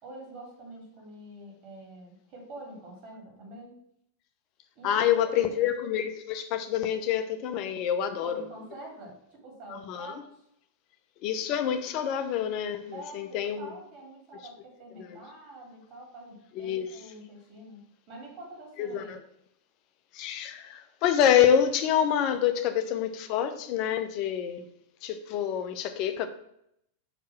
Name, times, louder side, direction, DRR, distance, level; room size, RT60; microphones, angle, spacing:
voice 1, 0.0-3.8 4.7-5.7 8.0-10.4 12.9-17.8 18.1-19.2, right 1 dB, 40° right, 3.0 m, -46 dB
voice 2, 4.8-8.4 9.7-10.1 11.2-13.7 15.1-15.2 16.6-16.9 18.8-19.2 20.1-24.7 25.0-26.3, left 9 dB, 40° left, 0.8 m, -27 dB
5.4 x 4.7 x 5.9 m
figure-of-eight pair, 90°, 0 cm